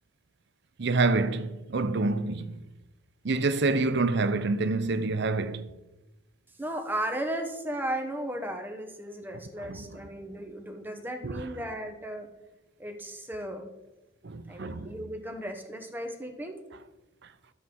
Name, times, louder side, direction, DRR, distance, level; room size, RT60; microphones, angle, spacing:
voice 1, 0.8-2.6 3.2-5.7 9.7-9.8 11.2-11.4 14.2-14.9, right 3 dB, 60° right, 0.7 m, -27 dB
voice 2, 6.6-12.3 12.8-13.7 14.5-16.6, right 1 dB, 10° right, 1.1 m, -35 dB
12.5 x 7.8 x 3.8 m
head